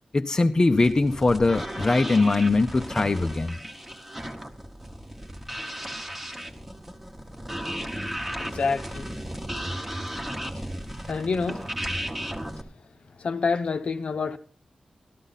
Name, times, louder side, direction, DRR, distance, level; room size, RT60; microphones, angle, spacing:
voice 1, 0.1-3.6, left 3 dB, 30° left, 0.6 m, -21 dB
sound 1, 0.7-12.6, equal, 10° right, 1.1 m, -35 dB
voice 2, 8.4-9.2 11.0-11.7 13.2-14.4, left 4 dB, 60° left, 0.8 m, -27 dB
13.5 x 13.0 x 4.1 m
wide cardioid pair, 150°, 2 cm